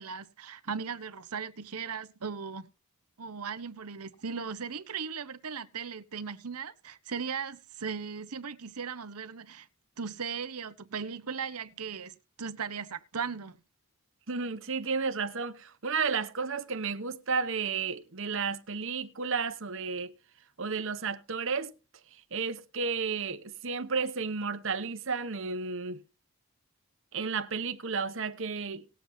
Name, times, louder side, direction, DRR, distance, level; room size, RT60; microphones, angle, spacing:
voice 1, 0.0-2.7 3.2-9.7 10.0-13.6, right 6 dB, 85° right, 1.0 m, -37 dB
voice 2, 14.3-20.1 20.6-21.7 22.3-26.0 27.1-28.9, right 5 dB, 60° right, 1.0 m, -32 dB
19.0 x 7.5 x 2.8 m
head